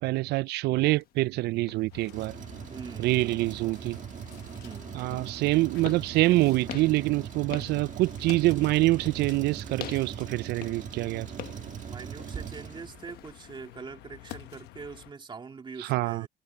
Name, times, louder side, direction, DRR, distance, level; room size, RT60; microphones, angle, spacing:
voice 1, 0.0-2.3 3.0-4.0 4.9-11.3 15.8-16.2, right 19 dB, 75° right, 0.4 m, -26 dB
sound 1, 0.9-13.8, left 11 dB, 65° left, 1.5 m, -47 dB
sound 2, 1.9-15.1, left 16 dB, 85° left, 1.0 m, -50 dB
Truck, 2.1-13.3, right 9 dB, 50° right, 1.6 m, -40 dB
voice 2, 2.7-3.5 4.6-5.0 11.3-16.3, right 5 dB, 30° right, 2.0 m, -44 dB
cardioid pair, 110°, 17 cm